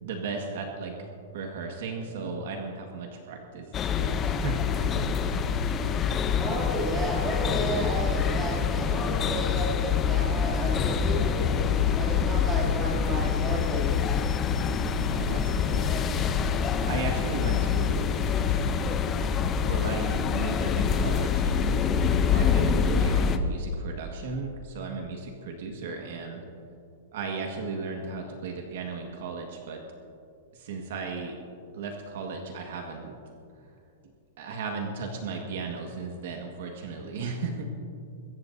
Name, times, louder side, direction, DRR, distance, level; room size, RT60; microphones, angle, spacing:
voice 1, 0.0-0.9 1.3-3.7 4.0-5.0 15.0-15.9 16.9-19.1 19.6-21.7 22.3-26.4 27.1-29.8 30.5-31.4 31.7-33.1 34.4-37.6, right 4 dB, 55° right, 2 dB, 1.6 m, -35 dB
sound 1, 3.7-23.4, left 7 dB, 15° left, 0.6 m, -26 dB
voice 2, 6.3-11.5 12.0-13.9, right 1 dB, 15° right, -5 dB, 2.7 m, -33 dB
24.0 x 14.5 x 2.7 m, 2.5 s
supercardioid pair, 175°, 0 cm